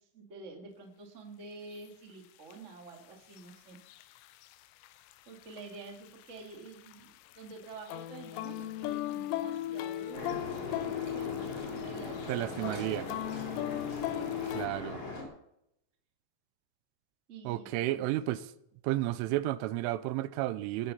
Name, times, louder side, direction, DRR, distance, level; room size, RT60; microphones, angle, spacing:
voice 1, 0.1-3.8 5.2-13.2 13.9-14.5 17.3-18.0, right 3 dB, 30° right, 1.4 m, -48 dB
sound 1, 1.7-1.8 2.5-2.6 3.4-4.6 4.8-5.1 5.4-7.0 7.3-14.7, left 14 dB, 80° left, 2.8 m, -37 dB
sound 2, 10.1-15.2, left 3 dB, 35° left, 4.3 m, -40 dB
voice 2, 12.3-13.1 14.5-15.0 17.5-18.4 18.8-20.9, right 15 dB, 85° right, 3.2 m, -32 dB
20.5 x 8.0 x 5.7 m
omnidirectional pair, 5.6 m